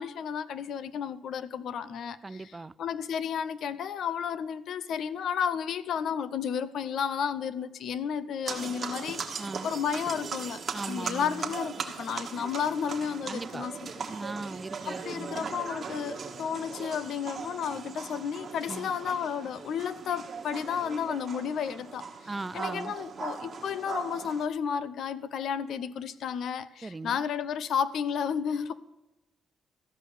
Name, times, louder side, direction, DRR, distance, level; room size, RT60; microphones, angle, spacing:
voice 1, 0.0-2.4 2.8-10.6 10.9-13.9 14.9-22.1 22.5-28.7, left 7 dB, 70° left, 0.5 m, -32 dB
voice 2, 2.2-2.7 9.4-9.7 10.7-11.5 13.3-13.7 14.1-15.5 16.7-16.9 18.7-18.9 22.3-23.0 26.8-27.2, right 3 dB, 20° right, 0.3 m, -39 dB
sound 1, 8.5-24.5, right 5 dB, 45° right, 1.3 m, -39 dB
14.0 x 5.4 x 6.8 m
cardioid pair, 90°, 0 cm